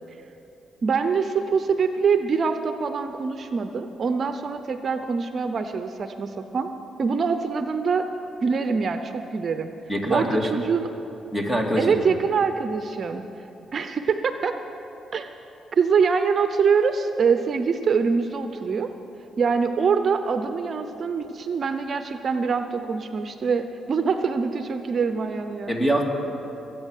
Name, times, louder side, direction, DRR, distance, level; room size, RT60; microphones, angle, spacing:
voice 1, 0.8-6.7 7.0-8.1 8.4-9.7 10.1-10.9 11.8-13.2 13.7-14.6 15.1-15.3 15.7-18.9 19.4-25.8, right 5 dB, 50° right, 8 dB, 0.7 m, -24 dB
voice 2, 9.9-10.5 11.3-12.0 25.7-26.0, equal, 10° left, 1 dB, 2.5 m, -23 dB
21.0 x 9.1 x 6.6 m, 3.0 s
cardioid pair, 70°, 0 cm